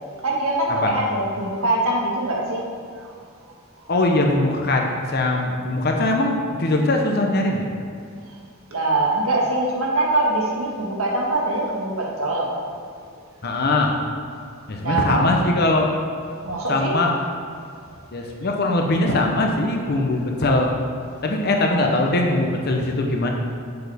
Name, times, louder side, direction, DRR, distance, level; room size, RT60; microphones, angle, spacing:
voice 1, 0.1-2.7 3.0-3.1 3.4-3.9 8.7-12.6 14.8-15.2 16.4-17.0 17.9-18.3, right 2 dB, 85° right, -2 dB, 1.5 m, -23 dB
voice 2, 3.9-7.6 13.4-13.9 14.7-15.9 16.7-17.2 18.1-20.7 21.2-23.3, left 2 dB, 50° left, 2 dB, 0.7 m, -21 dB
8.0 x 6.9 x 3.5 m, 2.3 s
head